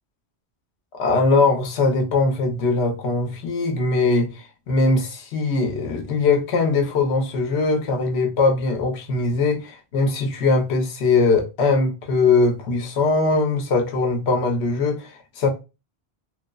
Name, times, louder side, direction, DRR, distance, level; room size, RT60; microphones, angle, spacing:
voice 1, 1.0-15.5, left 3 dB, 85° left, 0.9 m, -21 dB
3.0 x 2.0 x 2.3 m
omnidirectional pair, 1.1 m